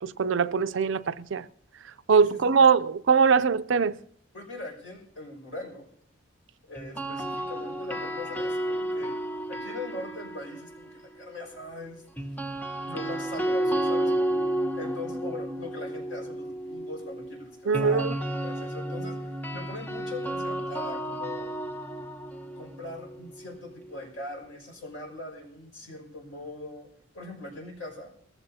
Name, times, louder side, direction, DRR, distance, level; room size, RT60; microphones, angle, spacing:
voice 1, 0.0-1.4 2.1-4.0 17.7-18.1, right 5 dB, 65° right, 0.4 m, -22 dB
voice 2, 2.2-2.6 4.3-5.9 6.7-9.2 9.5-12.0 12.3-12.4 12.8-14.4 14.8-21.5 22.6-26.9 27.1-28.1, left 2 dB, 75° left, 5.6 m, -41 dB
sound 1, 6.8-10.9 12.2-24.0, right 1 dB, 10° left, 0.8 m, -32 dB
20.5 x 15.5 x 2.7 m
head